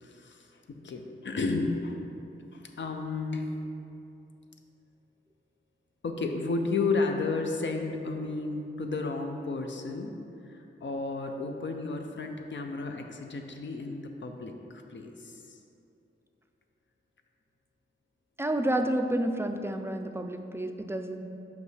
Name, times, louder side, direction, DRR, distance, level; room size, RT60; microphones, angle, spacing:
voice 1, 0.0-2.0 2.5-3.5 6.0-10.1 10.5-15.6, left 3 dB, 65° left, 4 dB, 0.5 m, -32 dB
voice 2, 18.4-21.2, right 1 dB, 10° right, 5 dB, 0.3 m, -30 dB
5.8 x 5.2 x 3.2 m, 2.7 s
wide cardioid pair, 90°, 21 cm